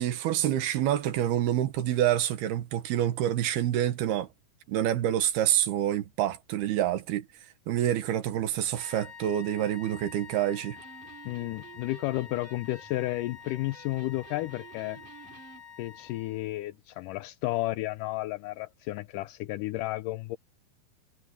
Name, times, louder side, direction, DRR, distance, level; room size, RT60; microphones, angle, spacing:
voice 1, 0.0-4.3 4.7-7.3 7.7-10.8, right 11 dB, 85° right, 3.5 m, -27 dB
sound 1, 8.7-16.6, left 7 dB, 30° left, 2.9 m, -48 dB
Electric guitar, 10.6-15.6, right 8 dB, 60° right, 3.8 m, -52 dB
voice 2, 11.3-15.0 15.8-20.4, left 17 dB, 80° left, 1.9 m, -32 dB
omnidirectional pair, 4.4 m